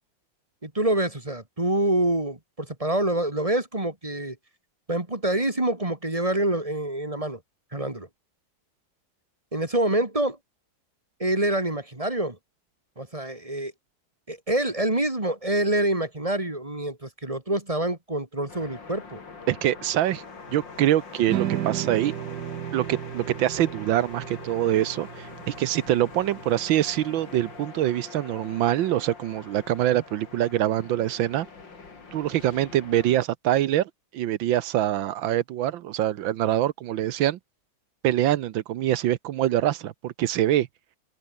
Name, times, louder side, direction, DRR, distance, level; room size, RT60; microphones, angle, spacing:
voice 1, 0.6-4.4 4.9-7.4 7.7-8.1 9.5-10.4 11.2-12.4 13.0-13.7 14.3-19.2, right 1 dB, 15° right, 2.4 m, -26 dB
sound 1, 18.5-33.2, left 4 dB, 65° left, 4.0 m, -44 dB
voice 2, 19.5-20.2 20.5-22.1 22.7-31.5 32.1-37.4 38.0-40.7, right 12 dB, 75° right, 1.5 m, -24 dB
sound 2, 21.3-27.5, right 11 dB, 60° right, 1.2 m, -34 dB
open air
omnidirectional pair, 2.2 m